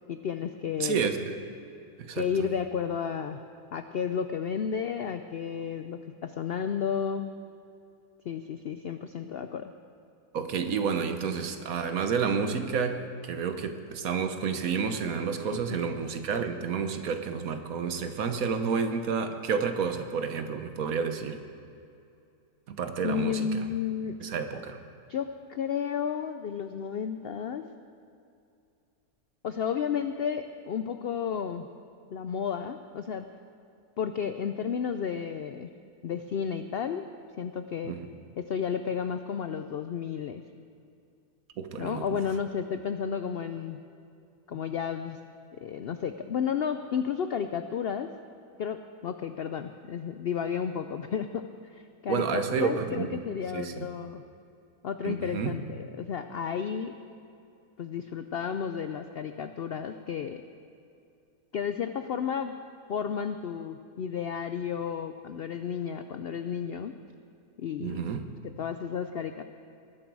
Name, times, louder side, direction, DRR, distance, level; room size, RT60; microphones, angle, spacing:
voice 1, 0.1-1.1 2.1-3.4 3.7-7.3 8.3-9.7 23.0-24.2 25.1-27.6 29.4-31.7 32.1-33.3 34.0-35.7 36.0-37.1 37.4-38.0 38.4-40.4 41.8-43.8 44.5-45.2 45.6-48.1 48.6-54.2 54.8-56.9 57.8-60.4 61.5-62.5 62.9-66.9 67.6-68.0 68.6-69.4, left 7 dB, 80° left, 9 dB, 0.5 m, -32 dB
voice 2, 0.8-1.4 2.1-2.2 10.3-21.4 22.7-23.6 24.2-24.8 37.8-38.0 41.6-42.2 52.1-53.1 53.5-53.9 55.0-55.6 67.8-68.3, right 6 dB, 65° right, 8 dB, 1.3 m, -30 dB
19.5 x 11.5 x 4.7 m, 2.6 s
omnidirectional pair, 1.6 m